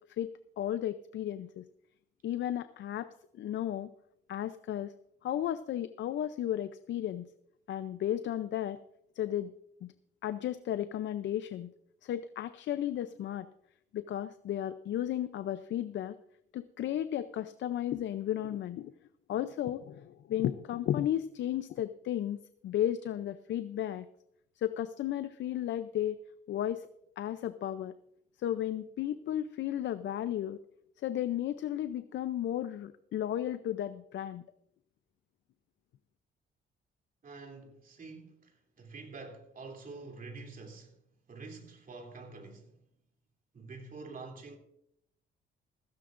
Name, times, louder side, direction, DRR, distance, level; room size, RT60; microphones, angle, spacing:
voice 1, 0.2-1.6 2.2-3.1 3.3-3.9 4.3-4.9 5.2-7.3 7.7-8.8 9.2-9.5 9.8-9.9 10.2-11.7 12.0-13.5 13.9-16.2 16.5-18.9 19.3-22.4 22.6-24.1 24.6-26.2 26.5-26.9 27.2-27.9 28.4-30.6 31.0-34.4, left 11 dB, 70° left, 0.6 m, -34 dB
voice 2, 37.2-41.0 41.3-42.8 43.5-44.6, right 3 dB, 45° right, 3.1 m, -47 dB
16.0 x 15.5 x 2.6 m
cardioid pair, 90°, 20 cm